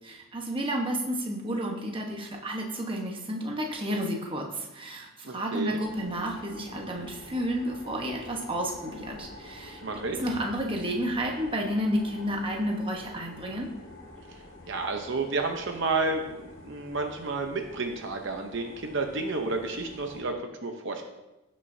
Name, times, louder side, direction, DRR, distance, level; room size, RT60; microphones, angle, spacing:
voice 1, 0.0-9.8 10.2-13.7, equal, 25° right, 0 dB, 1.1 m, -31 dB
voice 2, 5.2-5.8 9.8-10.2 14.3-21.0, right 3 dB, 55° right, 4 dB, 0.8 m, -31 dB
sound 1, 5.8-20.2, left 1 dB, 65° left, 2.4 m, -47 dB
16.5 x 6.3 x 2.7 m, 0.99 s
head